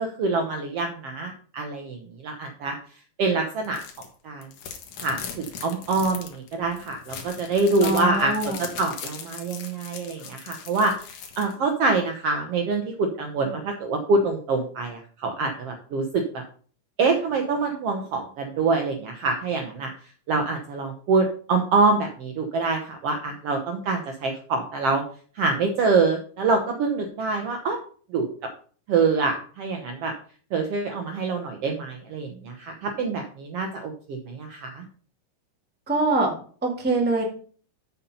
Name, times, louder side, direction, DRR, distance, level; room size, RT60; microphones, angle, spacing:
voice 1, 0.0-2.7 3.2-3.8 4.2-4.5 5.0-16.2 17.0-19.9 20.3-25.0 25.3-27.8 28.1-28.3 28.9-30.1 30.5-34.8, right 3 dB, 70° right, 4 dB, 1.5 m, -25 dB
sound 1, 3.6-4.1 4.4-11.5, left 7 dB, 70° left, 2.7 m, -39 dB
voice 2, 7.8-8.6 35.9-36.3 36.6-37.2, right 2 dB, 5° right, 0 dB, 1.0 m, -23 dB
8.0 x 5.8 x 5.4 m, 0.43 s
omnidirectional pair, 3.7 m